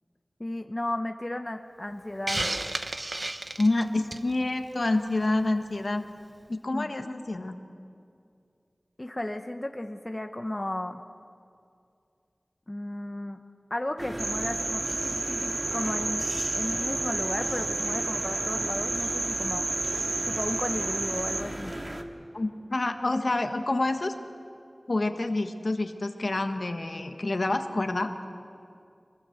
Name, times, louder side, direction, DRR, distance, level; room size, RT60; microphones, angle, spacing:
voice 1, 0.4-2.5 6.7-7.0 9.0-11.0 12.7-13.4 13.7-16.3 16.5-19.6 20.3-21.7, left 1 dB, 30° left, 5 dB, 1.0 m, -34 dB
Hiss, 2.3-4.3, right 2 dB, 50° right, 1.0 m, -31 dB
voice 2, 3.6-6.0 6.5-7.5 22.3-24.1 24.9-28.1, left 2 dB, 65° left, 6 dB, 1.5 m, -27 dB
sound 1, 14.0-22.0, right 1 dB, 30° right, 1.9 m, -36 dB
sound 2, 14.2-21.4, right 3 dB, 80° right, 0.9 m, -31 dB
24.5 x 20.0 x 8.0 m, 2.4 s
wide cardioid pair, 60°, 0 cm